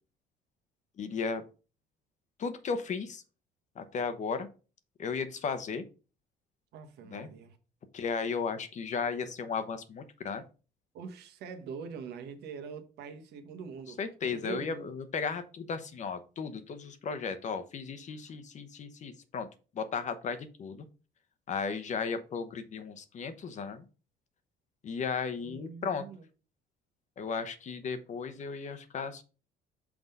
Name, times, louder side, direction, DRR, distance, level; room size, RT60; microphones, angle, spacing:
voice 1, 1.0-1.4 2.4-3.2 3.8-4.5 5.0-5.8 7.1-7.3 7.9-10.4 14.0-19.5 19.7-20.9 21.5-23.8 24.8-26.0 27.2-29.2, left 5 dB, 45° left, 0.9 m, -35 dB
voice 2, 6.7-7.6 10.9-14.0 14.3-14.9 25.4-26.2, right 6 dB, 75° right, 1.2 m, -43 dB
6.0 x 3.9 x 5.4 m
cardioid pair, 110°, 17 cm